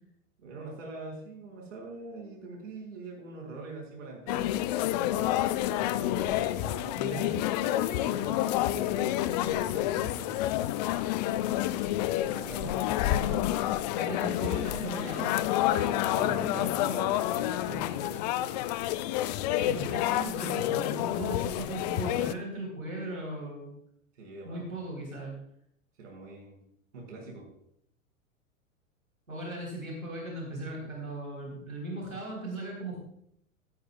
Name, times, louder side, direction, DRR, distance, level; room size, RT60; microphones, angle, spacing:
voice 1, 0.4-10.4 12.2-13.4 15.8-18.4 24.2-24.6 26.0-26.6 26.9-27.5, right 3 dB, 65° right, 0 dB, 5.3 m, -43 dB
sound 1, 4.3-22.3, left 14 dB, 35° left, 0.4 m, -29 dB
voice 2, 6.9-7.5 13.1-13.4 14.0-15.3 15.7-15.8 16.2-16.4 19.6-23.7 24.4-25.3 29.3-33.0, right 2 dB, 85° right, -2 dB, 3.9 m, -38 dB
15.0 x 12.5 x 2.3 m, 0.73 s
figure-of-eight pair, 90°, 40 cm